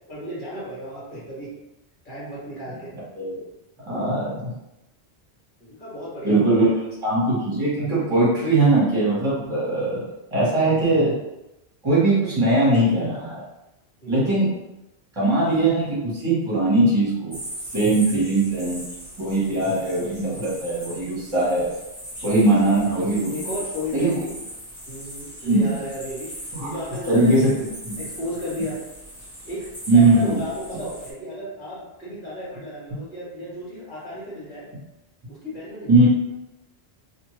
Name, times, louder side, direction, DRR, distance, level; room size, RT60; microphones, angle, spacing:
voice 1, 0.1-1.5 2.0-2.9 5.6-6.8 10.6-11.0 14.0-14.5 23.3-24.4 24.9-26.3 26.6-27.5 28.0-28.8 29.4-29.7 29.9-34.7 35.3-35.9, equal, 50° left, -8 dB, 1.6 m, -34 dB
voice 2, 3.9-4.5 6.2-6.7 7.0-10.0 10.3-11.1 11.8-13.4 14.1-14.5 15.1-17.4 17.7-18.8 19.2-21.7 22.2-23.3 23.9-24.1 25.4-25.7 26.5-26.7 27.1-27.4 27.8-28.0 29.9-30.4 35.9-36.1, right 2 dB, 25° right, -8 dB, 1.2 m, -20 dB
sound 1, 17.3-31.1, equal, 20° left, 1.1 m, -39 dB
2.7 x 2.6 x 3.1 m, 0.95 s
omnidirectional pair, 1.1 m